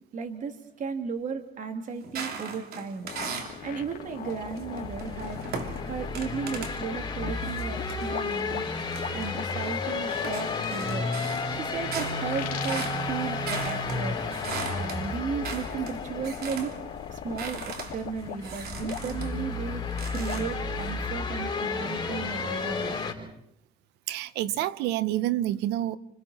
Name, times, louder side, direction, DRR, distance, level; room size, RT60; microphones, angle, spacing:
voice 1, 0.1-3.3 3.6-5.4 5.8-11.1 11.5-14.2 14.7-16.7 17.1-19.8 20.1-23.3, right 5 dB, 50° right, 2.6 m, -35 dB
sound 1, 2.0-3.6 4.1-6.8 7.4-9.7 10.1-16.8 17.1-19.4 19.9-20.9, right 5 dB, 65° right, 3.2 m, -39 dB
sound 2, 3.0-7.3 7.7-18.4 18.7-19.0 19.6-21.8, left 10 dB, 60° left, 2.8 m, -40 dB
sound 3, 3.5-23.1, left 3 dB, 25° left, 4.2 m, -33 dB
voice 2, 24.1-26.0, right 13 dB, 90° right, 0.9 m, -28 dB
29.0 x 27.0 x 4.3 m
cardioid pair, 110°, 17 cm